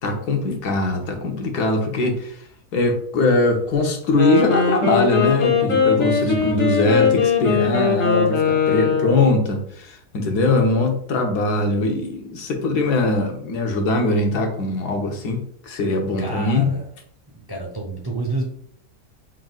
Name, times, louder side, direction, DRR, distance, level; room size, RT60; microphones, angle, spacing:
voice 1, 0.0-2.4 2.7-16.7, left 2 dB, 75° left, 3 dB, 1.5 m, -21 dB
Wind instrument woodwind instrument, 4.0-9.3, left 6 dB, 45° left, 2.4 m, -20 dB
voice 2, 6.2-7.1 16.2-16.9 17.5-18.5, right 2 dB, 25° right, -1 dB, 0.5 m, -30 dB
6.0 x 3.7 x 2.4 m, 0.64 s
omnidirectional pair, 1.7 m